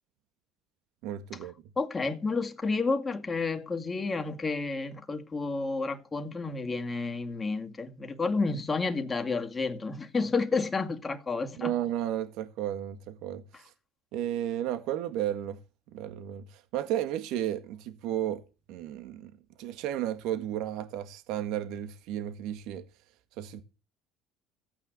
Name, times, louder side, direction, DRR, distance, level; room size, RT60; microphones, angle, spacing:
voice 1, 1.0-1.5 11.6-13.7 14.1-15.6 15.9-18.4 18.7-19.3 19.6-22.8 23.4-23.6, right 11 dB, 75° right, 1.6 m, -33 dB
voice 2, 1.8-11.7, left 3 dB, 20° left, 2.1 m, -30 dB
15.0 x 8.8 x 6.7 m
cardioid pair, 115°, 0 cm